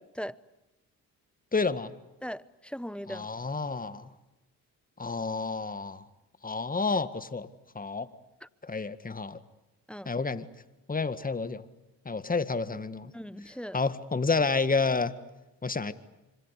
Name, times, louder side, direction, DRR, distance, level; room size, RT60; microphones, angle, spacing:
voice 1, 1.5-1.9 3.1-4.1 5.0-6.0 6.4-7.5 7.8-8.1 8.7-9.4 10.1-10.5 10.9-11.6 12.1-13.1 13.7-15.1 15.6-15.9, left 4 dB, 25° left, 1.9 m, -29 dB
voice 2, 2.2-3.3 8.4-8.5 9.9-10.1 13.1-13.8, equal, 5° left, 0.9 m, -39 dB
27.0 x 25.5 x 8.4 m
supercardioid pair, 60°, 36 cm